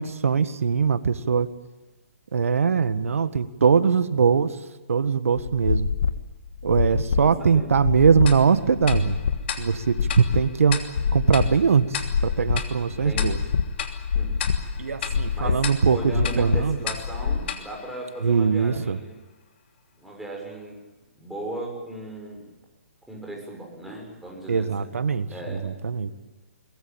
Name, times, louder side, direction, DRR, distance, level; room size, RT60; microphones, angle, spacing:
voice 1, 0.0-1.5 2.3-4.5 4.9-5.9 6.6-9.2 9.6-10.0 10.3-10.8 11.1-13.4 14.8-16.8 18.2-19.0 24.5-25.3 25.6-26.1, right 6 dB, 75° right, 13 dB, 1.6 m, -21 dB
sound 1, 5.4-17.4, left 6 dB, 65° left, 2.1 m, -27 dB
voice 2, 6.8-7.7 12.9-13.4 14.1-14.4 14.8-19.2 20.0-20.8 21.2-22.5 23.1-24.9 25.3-25.7, right 1 dB, ahead, -1 dB, 6.7 m, -37 dB
Tick-tock, 8.3-18.7, left 8 dB, 50° left, 3.0 m, -36 dB
23.0 x 20.5 x 8.9 m, 1.1 s
hypercardioid pair, 140°, 8 cm